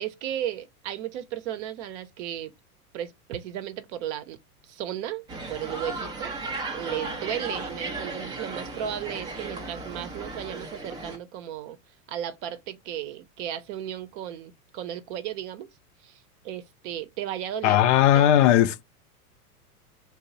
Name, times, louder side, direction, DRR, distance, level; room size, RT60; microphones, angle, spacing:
voice 1, 0.0-2.5 2.9-4.4 4.6-5.2 5.5-6.3 6.7-11.8 12.1-15.7 16.0-17.8 18.1-18.3, right 11 dB, 50° right, 0.6 m, -35 dB
sound 1, 5.3-11.2, right 2 dB, 10° right, 0.3 m, -35 dB
voice 2, 17.6-18.8, left 11 dB, 55° left, 0.5 m, -18 dB
3.0 x 2.0 x 4.0 m
hypercardioid pair, 100°, 46 cm